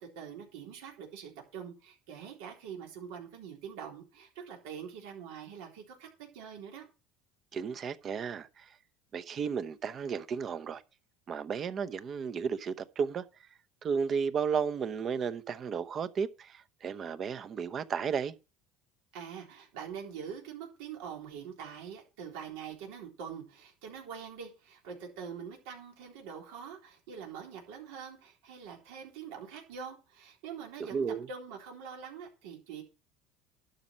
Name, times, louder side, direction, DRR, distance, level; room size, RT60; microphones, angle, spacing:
voice 1, 0.2-6.8 19.1-32.8, right 7 dB, 85° right, 3.7 m, -44 dB
voice 2, 7.5-8.7 9.1-10.8 11.3-13.2 13.8-18.3 30.9-31.3, right 6 dB, 35° right, 0.9 m, -33 dB
12.0 x 5.4 x 7.5 m
supercardioid pair, 120°, 0 cm